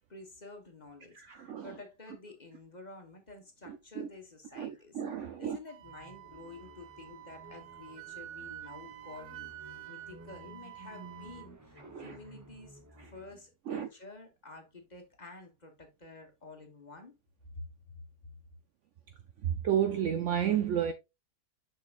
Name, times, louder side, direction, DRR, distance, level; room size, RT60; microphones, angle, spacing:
voice 1, 0.1-5.0 5.4-9.5 9.9-17.1 17.5-17.7, left 3 dB, 25° left, 1.3 m, -50 dB
voice 2, 1.1-1.8 3.7-4.1 4.5-5.6 11.9-12.2 13.0-13.1 13.7-13.9 19.4-20.9, right 9 dB, 85° right, 0.6 m, -32 dB
Wind instrument woodwind instrument, 5.7-11.5, right 13 dB, 70° right, 1.0 m, -48 dB
sound 1, 5.8-13.5, equal, 20° right, 0.4 m, -54 dB
6.6 x 6.2 x 2.5 m
omnidirectional pair, 1.9 m